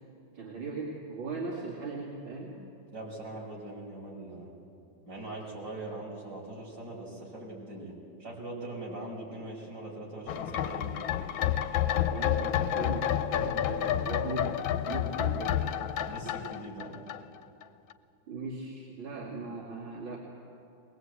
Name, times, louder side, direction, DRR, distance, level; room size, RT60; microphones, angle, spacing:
voice 1, 0.3-2.6 12.1-15.6 18.3-20.2, right 3 dB, 85° right, -5 dB, 3.3 m, -38 dB
voice 2, 2.9-4.5 5.1-11.1 16.1-17.0, right 2 dB, 65° right, -3 dB, 5.9 m, -41 dB
sound 1, 10.3-17.6 17.9-18.0, left 10 dB, 85° left, 1.5 m, -30 dB
22.0 x 20.5 x 8.1 m, 2.7 s
omnidirectional pair, 2.1 m